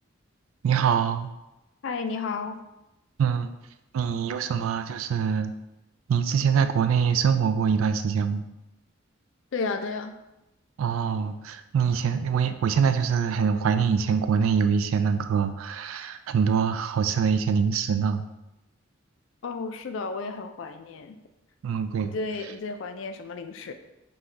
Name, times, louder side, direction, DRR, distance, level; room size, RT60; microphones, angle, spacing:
voice 1, 0.6-1.3 3.2-3.5 3.9-5.5 6.1-8.4 10.8-18.2 21.6-22.1, right 6 dB, 80° right, 9 dB, 0.3 m, -24 dB
voice 2, 1.8-2.6 9.5-10.1 19.4-21.2 22.0-23.7, left 4 dB, 65° left, 8 dB, 0.4 m, -32 dB
5.4 x 2.3 x 3.2 m, 0.94 s
head